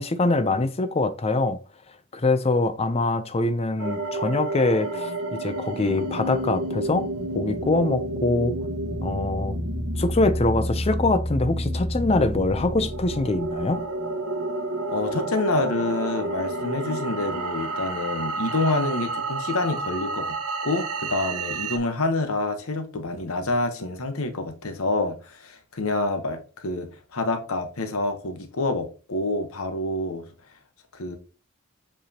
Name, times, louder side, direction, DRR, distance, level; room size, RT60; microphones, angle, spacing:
voice 1, 0.0-1.6 2.1-7.1 7.3-8.5 9.0-9.6 10.0-13.8, left 2 dB, 25° left, 0.5 m, -24 dB
sound 1, 3.8-21.8, right 1 dB, 80° right, 1.4 m, -30 dB
voice 2, 14.9-20.3 20.6-30.3 30.9-31.2, left 2 dB, 70° left, 1.1 m, -27 dB
7.5 x 4.9 x 2.9 m
head